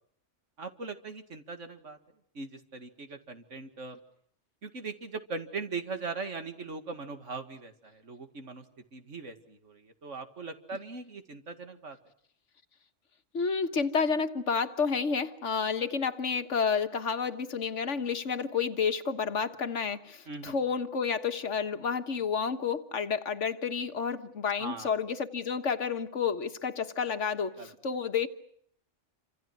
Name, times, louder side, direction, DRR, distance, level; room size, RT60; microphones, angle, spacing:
voice 1, 0.6-2.0 2.3-4.0 4.6-8.6 8.9-12.0 20.3-20.5 24.6-24.9 27.6-27.7, right 4 dB, 75° right, 8 dB, 2.5 m, -40 dB
voice 2, 13.3-28.3, left 6 dB, 70° left, 9 dB, 1.7 m, -30 dB
28.5 x 26.5 x 6.1 m, 0.64 s
omnidirectional pair, 1.3 m